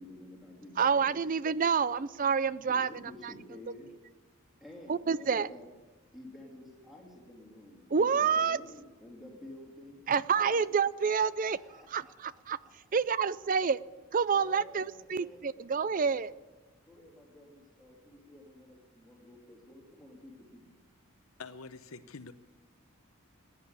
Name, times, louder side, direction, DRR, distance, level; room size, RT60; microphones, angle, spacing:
voice 1, 0.0-1.2 2.6-3.9 4.6-5.7 6.1-12.7 13.4-13.5 14.3-15.4 16.8-20.8, left 1 dB, ahead, -2 dB, 3.3 m, -51 dB
voice 2, 0.8-2.9 3.2-3.3 4.9-5.5 7.9-8.6 10.1-13.8 14.1-16.3, right 6 dB, 40° right, 18 dB, 0.4 m, -28 dB
voice 3, 21.4-22.3, left 4 dB, 75° left, 11 dB, 0.8 m, -45 dB
16.0 x 10.0 x 8.6 m, 1.2 s
head